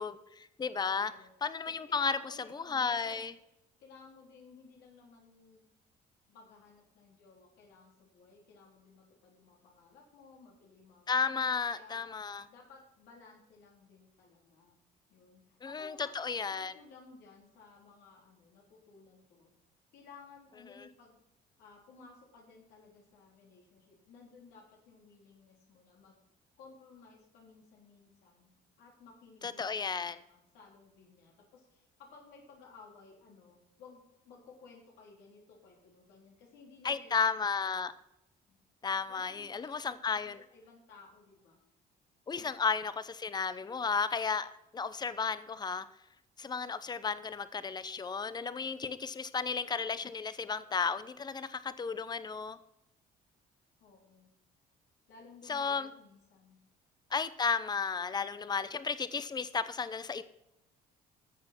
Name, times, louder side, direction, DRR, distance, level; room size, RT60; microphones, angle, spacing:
voice 1, 0.0-1.1 1.4-2.2 2.7-3.3 11.1-12.5 15.6-16.7 20.8-20.9 29.4-30.2 36.8-37.9 38.8-40.4 42.3-45.8 46.4-52.6 55.5-55.9 57.1-60.2, left 5 dB, 25° left, 0.8 m, -33 dB
voice 2, 0.8-1.3 1.9-3.3 3.8-5.7 6.3-12.1 12.5-14.8 15.1-16.1 16.4-19.5 19.9-21.2 21.6-26.2 26.6-28.5 28.8-37.8 38.5-38.6 39.1-41.6 42.4-42.5 53.8-54.3 55.1-56.6, left 4 dB, 85° left, 3.8 m, -57 dB
14.0 x 6.8 x 6.0 m
cardioid pair, 110°, 17 cm